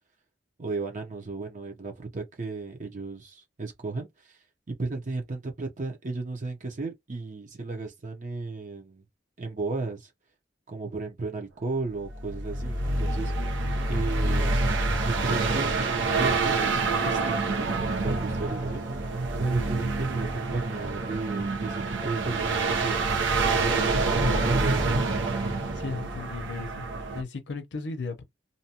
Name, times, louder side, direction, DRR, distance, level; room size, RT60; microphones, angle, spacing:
voice 1, 0.6-4.4 4.7-9.0 9.4-10.1 10.7-13.6 13.9-14.6 15.0-18.8 19.4-23.1 23.5-25.1, right 3 dB, 45° right, 0.7 m, -34 dB
sound 1, 12.0-27.2, right 3 dB, 90° right, 0.8 m, -27 dB
voice 2, 24.0-24.5 25.7-26.9 27.1-28.2, left 3 dB, 70° left, 0.6 m, -35 dB
2.7 x 2.2 x 2.8 m
head